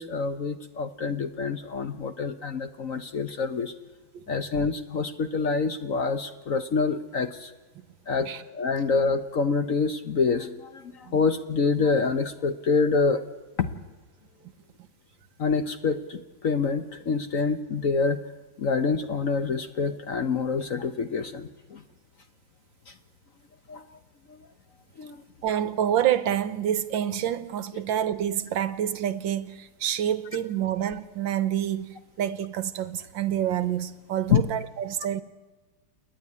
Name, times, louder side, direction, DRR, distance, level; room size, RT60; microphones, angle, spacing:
voice 1, 0.0-3.7 4.3-7.5 8.1-8.3 8.5-13.2 13.6-13.7 15.4-18.2 18.6-21.8 23.7-23.8 24.3-24.4 25.0-25.2 34.3-34.4, left 4 dB, 50° left, 1.1 m, -26 dB
voice 2, 25.4-35.2, right 10 dB, 75° right, 1.6 m, -27 dB
29.5 x 10.5 x 9.7 m
omnidirectional pair, 2.2 m